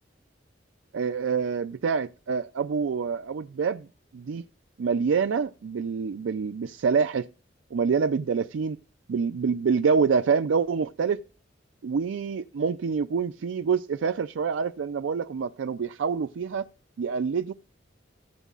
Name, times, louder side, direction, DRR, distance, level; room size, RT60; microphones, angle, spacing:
voice 1, 0.9-3.9 4.1-4.4 4.8-7.3 7.7-8.8 9.1-11.2 11.8-16.7 17.0-17.5, right 5 dB, 85° right, 0.4 m, -26 dB
15.0 x 8.1 x 2.4 m
head